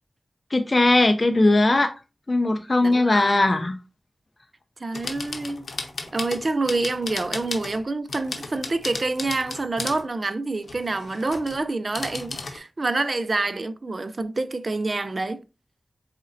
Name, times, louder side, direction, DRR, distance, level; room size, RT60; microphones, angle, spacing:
voice 1, 0.5-1.9 2.3-3.8, left 2 dB, 40° left, 0.5 m, -19 dB
voice 2, 2.8-3.7 4.8-15.4, right 3 dB, 50° right, 0.4 m, -27 dB
sound 1, 4.9-7.8 8.1-10.1 10.6-11.6 11.9-12.6, left 3 dB, 80° left, 0.7 m, -35 dB
4.2 x 3.9 x 2.5 m
wide cardioid pair, 55°, 0 cm